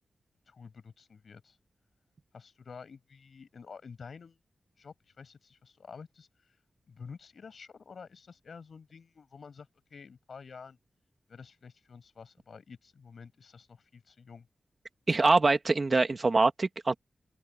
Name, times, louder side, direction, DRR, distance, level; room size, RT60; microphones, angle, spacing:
voice 1, 0.5-1.6 2.3-4.4 4.8-6.3 6.9-10.8 11.3-14.5, left 5 dB, 70° left, 6.4 m, -49 dB
voice 2, 15.1-17.0, right 3 dB, 40° right, 2.0 m, -24 dB
open air
wide cardioid pair, 95°, 0 cm